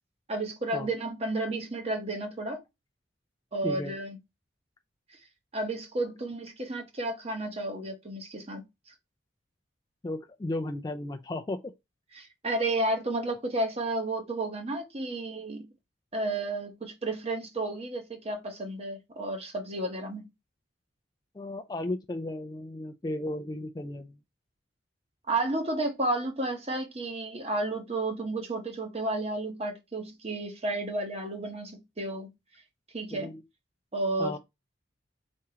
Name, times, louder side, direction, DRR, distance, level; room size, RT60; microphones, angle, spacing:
voice 1, 0.3-2.6 3.5-4.2 5.5-8.6 12.1-15.7 16.1-20.2 25.3-32.3 32.9-33.3 33.9-34.4, right 2 dB, 30° right, 0.9 m, -32 dB
voice 2, 3.6-3.9 10.0-11.7 21.4-24.2 33.1-33.4 34.2-34.4, left 2 dB, 20° left, 0.3 m, -34 dB
4.3 x 3.6 x 2.8 m
head